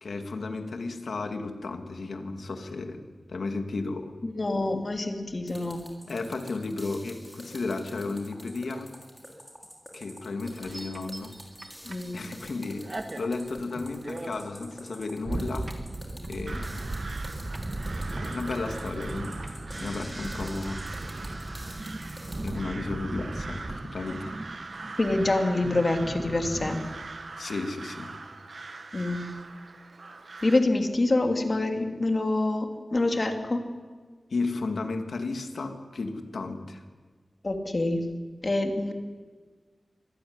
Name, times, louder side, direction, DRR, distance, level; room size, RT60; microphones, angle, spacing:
voice 1, 0.0-3.0 3.3-4.1 4.5-4.8 6.1-8.9 9.9-11.3 12.1-15.7 16.3-16.8 18.1-20.8 22.3-24.3 27.4-28.1 34.3-36.8, left 3 dB, 85° left, 5 dB, 2.4 m, -34 dB
voice 2, 4.2-5.8 11.9-12.2 25.0-26.8 28.9-29.3 30.4-33.6 37.4-38.1 38.4-38.9, left 2 dB, 40° left, 4 dB, 2.7 m, -26 dB
sound 1, 5.5-22.6, equal, ahead, 5.9 m, -48 dB
sound 2, 10.5-12.5 12.8-26.8, right 2 dB, 35° right, 2.1 m, -37 dB
Crow, 16.5-30.6, right 3 dB, 60° right, 1.5 m, -42 dB
25.0 x 16.0 x 9.7 m, 1.5 s
wide cardioid pair, 85°, 0 cm